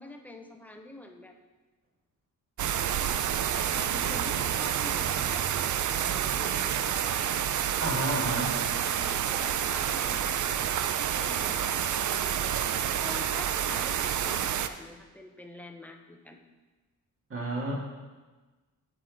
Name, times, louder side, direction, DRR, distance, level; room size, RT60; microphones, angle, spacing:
voice 1, 0.0-1.3 3.6-6.7 8.6-10.7 11.1-12.4 12.8-16.4, left 1 dB, 5° left, 4 dB, 0.5 m, -45 dB
sound 1, 2.6-14.7, right 9 dB, 55° right, 0.4 m, -29 dB
voice 2, 7.8-8.6 17.3-17.7, right 1 dB, 35° right, -4 dB, 1.9 m, -30 dB
14.0 x 5.0 x 3.8 m, 1.3 s
wide cardioid pair, 175°, 36 cm